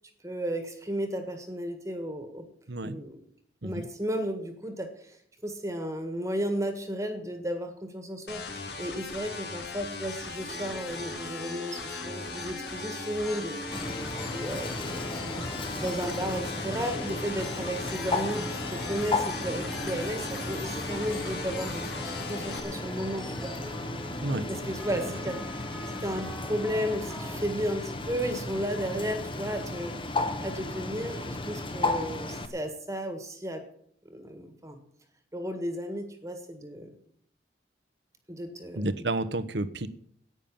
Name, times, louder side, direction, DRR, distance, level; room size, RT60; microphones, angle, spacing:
voice 1, 0.2-2.4 2.8-3.2 3.6-5.2 5.4-23.5 24.5-33.6 34.0-34.8 35.3-36.9 38.3-38.9, equal, 15° right, 7 dB, 1.6 m, -34 dB
sound 1, 8.3-22.6, left 4 dB, 65° left, 2.3 m, -39 dB
sound 2, 10.0-27.4, equal, ahead, 1.4 m, -42 dB
Bird, 13.7-32.5, left 2 dB, 30° left, 1.1 m, -35 dB
voice 2, 38.7-39.9, right 2 dB, 75° right, 15 dB, 1.0 m, -30 dB
11.0 x 9.2 x 8.7 m, 0.66 s
head